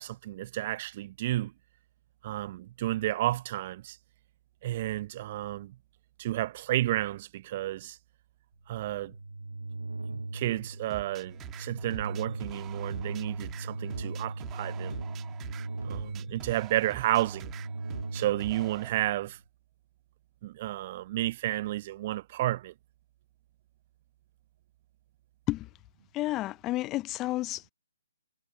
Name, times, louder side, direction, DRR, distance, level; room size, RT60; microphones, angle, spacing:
voice 1, 0.0-1.5 2.2-4.0 4.6-5.8 6.2-8.0 8.7-9.2 10.1-15.0 15.8-17.5 18.1-19.4 20.4-22.7, right 15 dB, 35° right, 0.7 m, -31 dB
sound 1, 8.7-19.3, right 2 dB, 80° right, 0.7 m, -39 dB
sound 2, 10.9-18.9, right 13 dB, 20° right, 1.8 m, -47 dB
voice 2, 26.1-27.7, left 17 dB, 20° left, 0.6 m, -31 dB
figure-of-eight pair, 135°, 0 cm